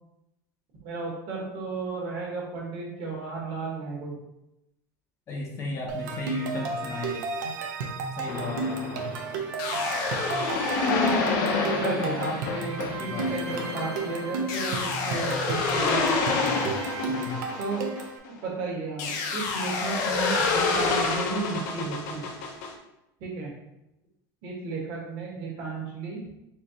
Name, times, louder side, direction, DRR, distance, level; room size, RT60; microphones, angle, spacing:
voice 1, 0.8-4.2 11.7-16.6 17.6-17.8 18.4-22.3 23.2-23.5 24.4-26.3, right 3 dB, 50° right, -3 dB, 1.5 m, -33 dB
voice 2, 5.3-7.2 8.2-9.2 11.7-12.2 13.0-13.6 17.1-17.4, left 2 dB, 25° left, -1 dB, 0.6 m, -35 dB
sound 1, 5.9-18.2, right 3 dB, 80° right, 0.7 m, -33 dB
sound 2, 8.3-18.4 19.0-22.7, left 4 dB, 65° left, 0.7 m, -28 dB
4.3 x 3.2 x 2.9 m, 0.90 s
supercardioid pair, 155°, 10 cm